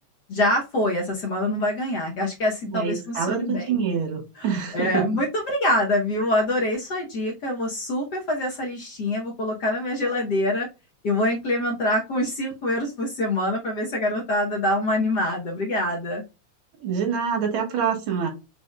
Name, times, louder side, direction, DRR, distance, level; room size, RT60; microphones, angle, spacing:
voice 1, 0.3-3.7 4.4-10.7 11.0-16.2, left 1 dB, 80° left, 0.9 m, -25 dB
voice 2, 2.7-5.1 16.8-18.3, right 6 dB, 65° right, 2.7 m, -26 dB
5.8 x 3.5 x 2.3 m
omnidirectional pair, 3.5 m